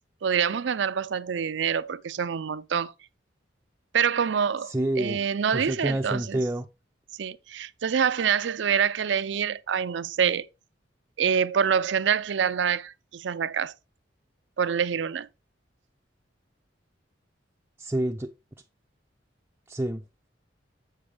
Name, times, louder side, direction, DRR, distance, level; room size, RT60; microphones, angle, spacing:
voice 1, 0.2-2.9 3.9-6.4 7.2-10.5 11.2-13.7 14.6-15.3, right 7 dB, 70° right, 0.5 m, -26 dB
voice 2, 4.6-5.2 5.5-6.7 17.8-18.3 19.7-20.0, right 1 dB, 10° right, 0.4 m, -28 dB
7.8 x 6.6 x 3.3 m
head